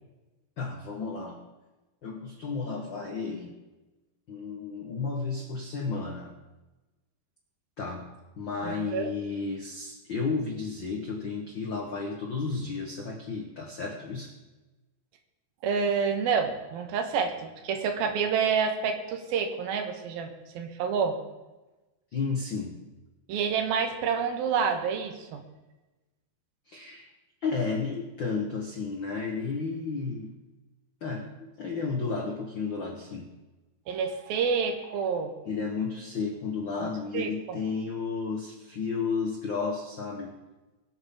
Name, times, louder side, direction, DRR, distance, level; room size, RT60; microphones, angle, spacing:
voice 1, 0.6-1.4 2.0-3.5 4.3-6.3 7.8-8.1 8.4-14.3 22.1-22.8 26.7-27.1 27.4-30.3 31.0-33.3 35.4-40.3, left 4 dB, 80° left, 1 dB, 1.0 m, -32 dB
voice 2, 8.6-9.1 15.6-21.2 23.3-25.4 33.9-35.3 37.1-37.6, right 6 dB, 80° right, 6 dB, 3.0 m, -28 dB
23.0 x 8.0 x 3.7 m, 1.1 s
omnidirectional pair, 4.3 m